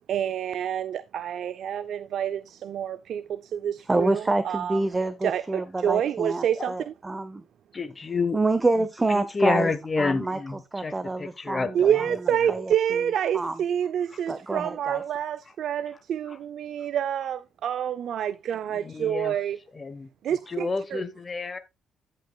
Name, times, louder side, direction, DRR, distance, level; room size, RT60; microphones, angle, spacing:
voice 1, 0.1-4.8 5.2-6.9 11.7-19.6 20.2-21.0, right 9 dB, 70° right, 0.3 m, -28 dB
voice 2, 3.8-7.4 8.3-13.6 14.3-15.0, right 2 dB, 20° right, 0.6 m, -28 dB
voice 3, 7.7-8.4 9.1-10.6 10.8-10.9 11.2-11.7 18.8-19.3 19.8-20.1 20.5-21.6, left 4 dB, 30° left, 1.0 m, -28 dB
14.5 x 5.6 x 2.2 m
cardioid pair, 90°, 0 cm